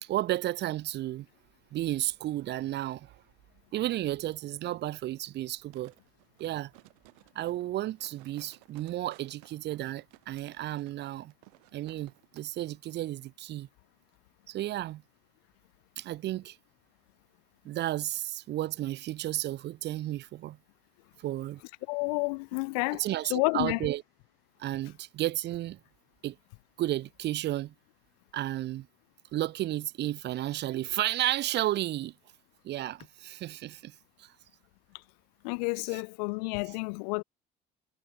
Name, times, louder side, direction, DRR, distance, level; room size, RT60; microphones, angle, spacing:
voice 1, 0.0-1.3 1.7-3.2 3.7-5.9 6.4-6.7 7.3-11.3 11.7-13.7 14.5-15.0 16.0-16.6 17.6-20.6 21.2-21.6 22.9-24.0 24.6-25.8 26.2-26.4 26.8-27.7 28.3-28.9 29.3-32.1 32.6-34.3 35.9-36.0, right 14 dB, 60° right, 0.8 m, -33 dB
sound 1, 5.7-12.5 12.8-12.9, right 32 dB, 80° right, 4.9 m, -58 dB
voice 2, 21.9-23.8 35.4-37.2, left 32 dB, 80° left, 0.9 m, -30 dB
hypercardioid pair, 65°, 20 cm